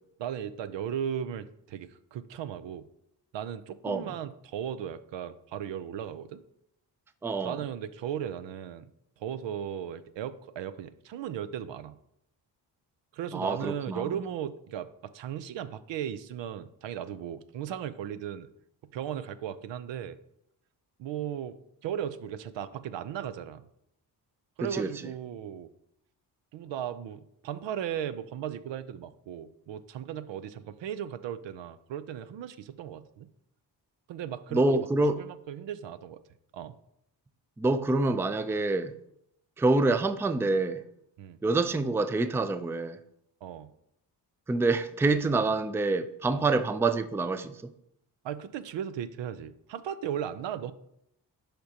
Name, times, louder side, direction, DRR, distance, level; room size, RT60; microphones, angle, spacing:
voice 1, 0.2-2.9 3.3-6.4 7.4-8.9 9.2-11.9 13.1-18.5 18.9-20.2 21.0-23.7 24.6-25.7 26.5-33.3 34.1-34.9 35.2-36.2 36.5-36.7 41.2-41.4 43.4-43.7 46.3-46.5 48.2-50.7, right 9 dB, 80° right, 0.6 m, -36 dB
voice 2, 3.8-4.2 7.2-7.6 13.3-14.0 24.7-24.9 34.5-35.2 37.6-38.9 39.6-40.8 41.4-43.0 44.5-47.7, right 2 dB, 5° right, 0.3 m, -26 dB
10.5 x 5.2 x 2.8 m
cardioid pair, 75°, 43 cm